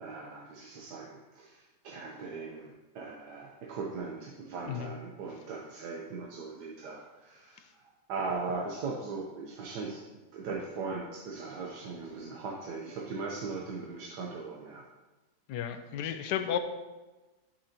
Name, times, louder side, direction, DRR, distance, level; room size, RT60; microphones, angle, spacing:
voice 1, 0.0-7.8 8.1-10.0 10.3-14.8, right 4 dB, 80° right, -2 dB, 1.5 m, -39 dB
voice 2, 15.5-16.6, left 9 dB, 85° left, 8 dB, 1.3 m, -33 dB
11.5 x 5.9 x 2.9 m, 1.1 s
omnidirectional pair, 1.8 m